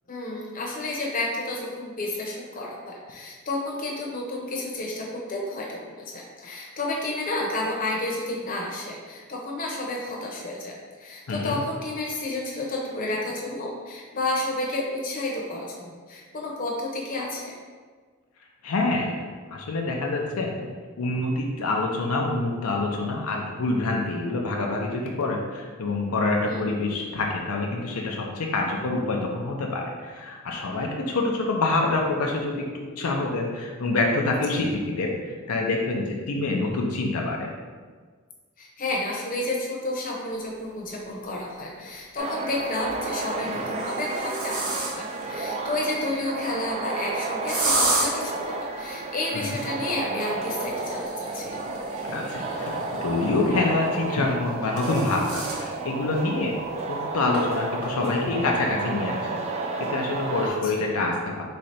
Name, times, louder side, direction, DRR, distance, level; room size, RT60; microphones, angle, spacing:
voice 1, 0.1-17.6 26.4-26.6 34.5-34.6 38.6-51.6 60.4-60.8, left 2 dB, 40° left, -2 dB, 0.8 m, -31 dB
voice 2, 18.6-19.2 19.5-20.7 21.0-37.5 49.3-49.6 52.0-56.6 56.9-59.3 59.9-61.4, left 2 dB, 85° left, 0 dB, 0.5 m, -26 dB
sound 1, 41.1-41.2 42.6-43.1 43.6-45.2 47.5-48.1 50.7-53.3 54.3-55.6 56.1-56.2 56.6-56.7 57.3-57.4 57.8-58.2, right 2 dB, 80° right, 1.1 m, -30 dB
Arcade Zone Atmosphere, 42.2-60.5, right 3 dB, 30° right, 0.3 m, -32 dB
3.7 x 3.2 x 4.1 m, 1.5 s
head